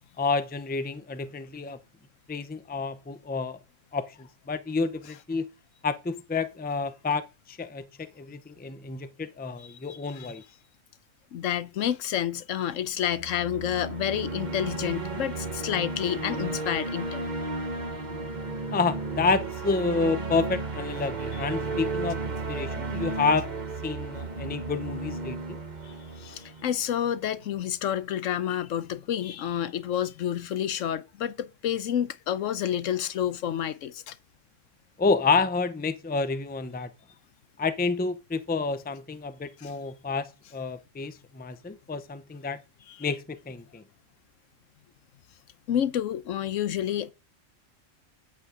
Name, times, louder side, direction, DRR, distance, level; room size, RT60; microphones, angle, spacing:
voice 1, 0.2-1.8 2.3-3.6 3.9-5.5 5.8-7.2 7.5-10.4 18.7-23.5 23.8-25.6 35.0-36.9 37.6-42.6 43.0-43.8, left 4 dB, 10° left, 0.4 m, -29 dB
voice 2, 9.6-10.3 11.3-17.3 21.3-21.5 25.8-34.2 39.6-39.7 42.9-43.1 45.7-47.1, left 10 dB, 85° left, 1.1 m, -29 dB
sound 1, 13.0-27.2, right 3 dB, 35° right, 1.4 m, -34 dB
9.2 x 8.4 x 3.8 m
omnidirectional pair, 1.3 m